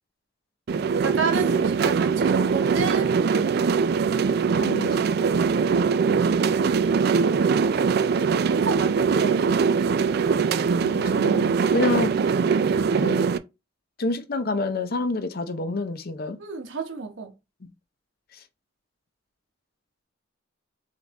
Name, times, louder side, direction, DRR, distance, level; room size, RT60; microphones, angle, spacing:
sound 1, 0.7-13.4, right 5 dB, 55° right, 0.3 m, -22 dB
voice 1, 0.9-3.6 8.4-9.4 16.4-17.3, right 4 dB, 80° right, 1.2 m, -31 dB
voice 2, 4.5-5.0 10.8-12.1 13.0-13.3 14.0-16.4, left 2 dB, 50° left, 0.6 m, -28 dB
3.7 x 3.5 x 3.0 m
head